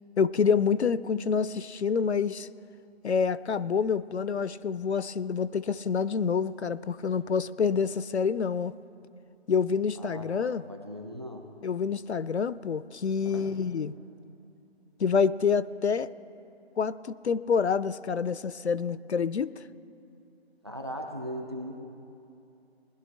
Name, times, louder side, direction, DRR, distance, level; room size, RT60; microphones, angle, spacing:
voice 1, 0.2-2.5 3.0-8.8 9.5-10.6 11.6-13.9 15.0-16.1 16.8-19.6, left 6 dB, 80° left, 17 dB, 0.5 m, -27 dB
voice 2, 10.0-11.5 13.2-13.6 20.6-21.8, equal, 25° right, 4 dB, 0.6 m, -39 dB
20.5 x 11.5 x 3.3 m, 2.7 s
figure-of-eight pair, 160°, 33 cm